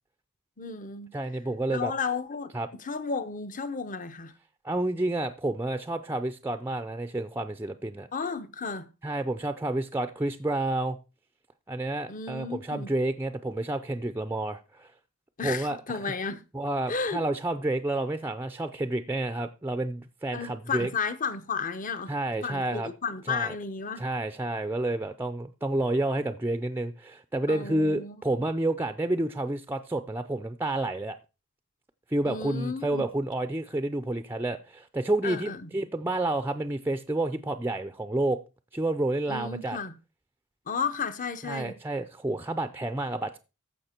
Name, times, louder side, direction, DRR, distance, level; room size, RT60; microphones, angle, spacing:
voice 1, 0.6-1.1 1.7-4.3 8.1-8.9 12.1-12.9 15.4-16.4 16.9-17.2 20.3-22.1 22.4-24.1 27.5-28.4 32.3-33.1 35.2-35.7 39.3-39.9 40.7-41.7, left 5 dB, 35° left, 0.8 m, -33 dB
voice 2, 1.1-1.9 2.5-2.7 4.6-8.1 9.0-11.0 11.7-14.9 15.4-16.1 16.5-20.9 22.1-22.9 23.3-23.6 24.0-31.2 32.1-38.4 38.7-39.8 41.4-43.4, right 2 dB, 10° right, 0.5 m, -30 dB
14.5 x 5.8 x 4.4 m
head